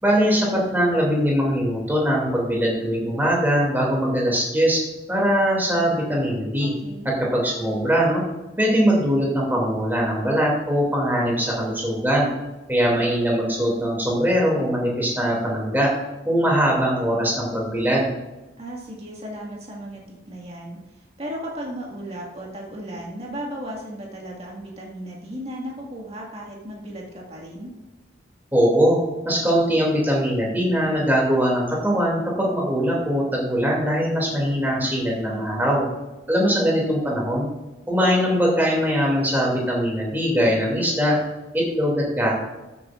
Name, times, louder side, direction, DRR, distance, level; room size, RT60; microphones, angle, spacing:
voice 1, 0.0-4.8 5.1-6.7 7.0-8.2 8.6-12.3 12.7-15.9 16.2-18.1 28.5-29.0 29.2-35.9 36.3-37.5 37.9-41.2 41.5-42.4, equal, 10° right, -3 dB, 2.6 m, -21 dB
voice 2, 6.6-7.2 18.6-20.8 21.2-27.7 35.3-35.8, equal, 35° right, -2 dB, 1.9 m, -35 dB
13.5 x 8.2 x 2.5 m, 1.1 s
head